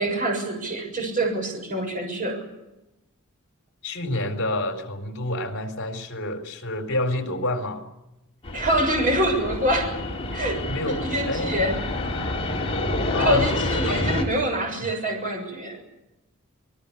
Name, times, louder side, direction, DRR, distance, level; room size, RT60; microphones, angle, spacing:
voice 1, 0.0-2.4 8.5-10.0 10.3-11.8 13.2-15.8, right 1 dB, 40° right, 2 dB, 6.8 m, -25 dB
voice 2, 3.8-7.9 10.7-11.5 13.1-13.9, left 1 dB, 60° left, 5 dB, 4.1 m, -28 dB
Fixed-wing aircraft airplane, 8.4-14.2, left 2 dB, 30° left, 4.0 m, -28 dB
27.5 x 20.0 x 7.1 m, 0.93 s
head